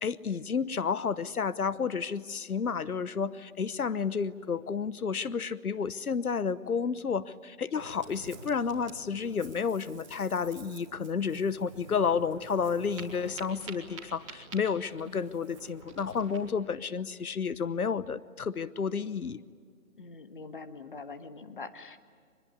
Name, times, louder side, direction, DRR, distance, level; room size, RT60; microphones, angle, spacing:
voice 1, 0.0-19.4, left 6 dB, 85° left, 16 dB, 1.0 m, -31 dB
Ocean, 7.7-16.5, right 4 dB, 20° right, 3.1 m, -48 dB
voice 2, 15.0-15.3 20.0-22.0, left 4 dB, 35° left, 10 dB, 1.3 m, -44 dB
24.5 x 22.0 x 9.6 m, 2.1 s
hypercardioid pair, 170°, 43 cm